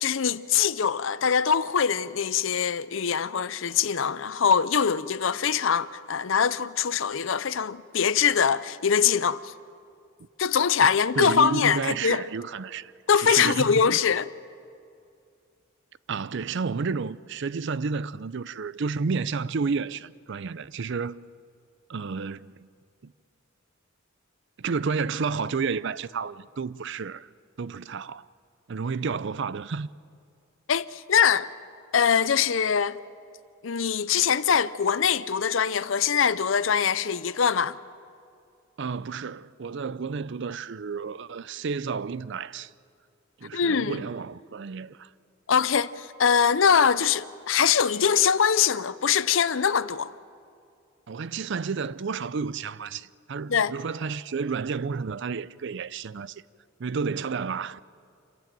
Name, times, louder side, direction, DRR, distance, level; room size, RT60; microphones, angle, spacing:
voice 1, 0.0-9.4 10.4-12.2 13.1-14.3 30.7-31.5 31.9-33.0 33.6-37.8 43.5-44.0 45.5-50.1 53.5-53.7, left 7 dB, 65° left, 0.6 m, -23 dB
voice 2, 11.2-14.0 16.1-21.2 21.9-22.5 23.0-23.1 24.6-27.3 27.6-28.3 28.7-29.9 38.8-42.7 43.4-45.1 51.1-56.4 56.8-57.8, right 5 dB, 60° right, 0.5 m, -31 dB
27.5 x 15.0 x 8.9 m
head